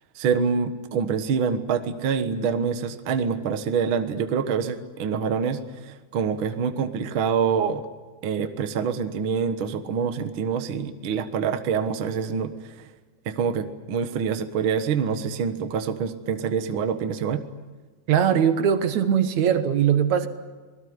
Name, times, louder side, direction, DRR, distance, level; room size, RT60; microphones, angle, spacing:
voice 1, 0.1-7.8 8.2-12.9 13.2-17.4, right 6 dB, 50° right, 8 dB, 1.8 m, -26 dB
voice 2, 18.1-20.3, right 8 dB, 70° right, 10 dB, 2.5 m, -20 dB
26.5 x 20.0 x 9.6 m, 1.3 s
omnidirectional pair, 3.6 m